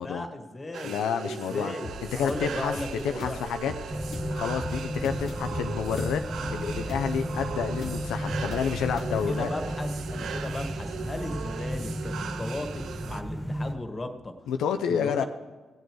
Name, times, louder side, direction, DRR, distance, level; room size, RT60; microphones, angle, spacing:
voice 1, 0.0-1.0 1.3-1.9 2.2-3.4 9.0-14.3 14.9-15.3, left 2 dB, 30° left, 6 dB, 1.8 m, -36 dB
sound 1, 0.7-13.2, right 7 dB, 70° right, 0.5 m, -39 dB
voice 2, 0.8-1.7 2.1-2.7 3.1-3.7 4.3-6.2 6.5-9.5 14.5-15.2, left 7 dB, 80° left, 7 dB, 0.5 m, -29 dB
sound 2, 1.8-11.5, left 3 dB, 60° left, 1.3 m, -42 dB
sound 3, 3.9-13.7, equal, 5° right, 1.2 m, -33 dB
17.0 x 8.1 x 4.7 m, 1.3 s
hypercardioid pair, 45°, 0 cm